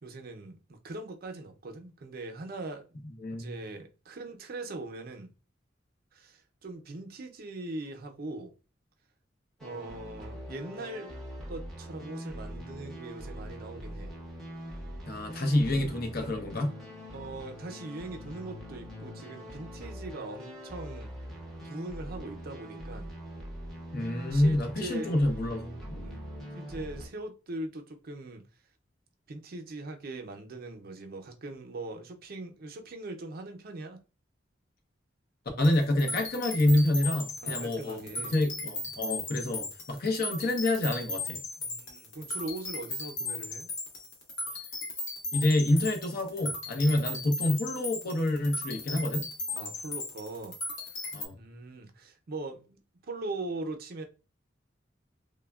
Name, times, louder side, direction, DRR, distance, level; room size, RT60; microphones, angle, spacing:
voice 1, 0.0-3.0 3.3-5.3 6.1-8.5 9.6-11.1 11.5-14.1 17.1-21.1 21.6-23.1 24.3-25.1 26.0-28.4 29.3-34.0 37.4-38.3 41.6-43.7 49.5-50.6 50.8-50.9 51.3-52.8 53.1-54.0, right 2 dB, 55° right, 0.5 m, -41 dB
voice 2, 3.2-3.5 15.1-16.8 23.9-26.0 35.6-41.4 45.3-49.3 51.1-51.3, left 1 dB, 55° left, 0.7 m, -27 dB
sound 1, 9.6-27.1, equal, 5° left, 0.6 m, -42 dB
sound 2, 35.6-51.3, left 2 dB, 85° left, 0.8 m, -37 dB
3.2 x 2.1 x 2.2 m
head